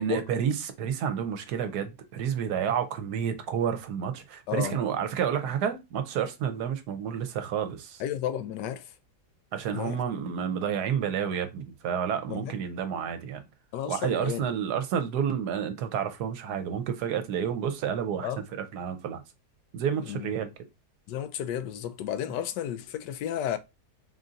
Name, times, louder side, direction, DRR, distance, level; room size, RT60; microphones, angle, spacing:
voice 1, 0.0-8.0 9.5-13.4 13.9-18.3 18.7-19.2 19.7-20.5, right 8 dB, 75° right, 1.2 m, -30 dB
voice 2, 4.5-4.8 8.0-9.0 9.7-10.0 12.3-12.5 13.7-14.4 18.2-18.4 20.0-20.3 21.1-23.6, left 10 dB, 85° left, 1.2 m, -32 dB
3.7 x 2.6 x 3.8 m
omnidirectional pair, 1.8 m